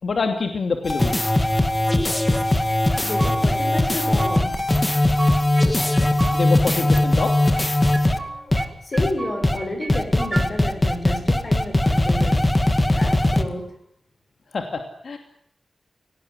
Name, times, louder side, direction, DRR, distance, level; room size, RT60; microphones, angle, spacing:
voice 1, 0.0-1.3 6.3-7.4 14.5-15.2, left 4 dB, 75° left, 5 dB, 2.7 m, -26 dB
sound 1, 0.8-8.2 8.5-8.6 9.0-9.1 9.4-9.6 9.9-13.4, left 1 dB, 20° left, 2.2 m, -19 dB
sound 2, 2.7-3.7 3.9-4.7 4.9-6.4 6.7-7.7 7.9-8.7 8.9-10.5, right 3 dB, 35° right, 3.7 m, -34 dB
voice 2, 3.0-4.7 8.2-12.5 12.9-13.8, left 1 dB, 45° left, 6 dB, 7.0 m, -31 dB
29.0 x 18.5 x 9.8 m, 0.71 s
wide cardioid pair, 130°, 0 cm